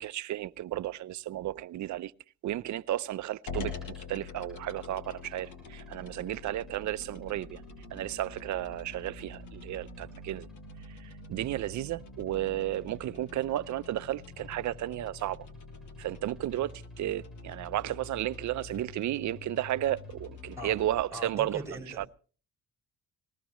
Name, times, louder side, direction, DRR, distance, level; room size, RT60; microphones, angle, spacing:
voice 1, 0.0-2.1 2.4-7.6 7.9-10.5 10.9-15.5 16.0-21.6 22.0-22.1, right 13 dB, 70° right, 0.8 m, -33 dB
sound 1, 3.5-20.9, left 5 dB, 75° left, 6.2 m, -46 dB
voice 2, 21.1-22.0, right 1 dB, 10° right, 6.5 m, -39 dB
21.0 x 20.0 x 3.1 m
cardioid pair, 90°, 30 cm